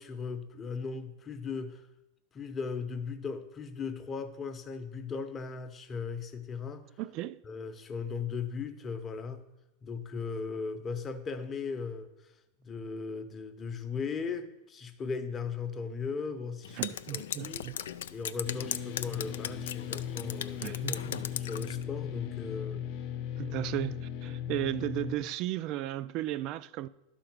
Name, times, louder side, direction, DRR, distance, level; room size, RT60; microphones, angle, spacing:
voice 1, 0.0-1.9 2.3-6.9 7.4-9.4 9.8-12.3 12.6-17.7 18.1-22.9, left 5 dB, 25° left, 0.8 m, -38 dB
voice 2, 7.0-7.4 16.8-17.7 20.6-21.2 23.4-26.9, right 14 dB, 50° right, 0.3 m, -35 dB
Drip, 16.6-21.8, left 9 dB, 85° left, 0.3 m, -38 dB
sound 1, 18.4-25.2, left 10 dB, 55° left, 0.8 m, -37 dB
11.0 x 3.9 x 6.0 m
hypercardioid pair, 120°, 0 cm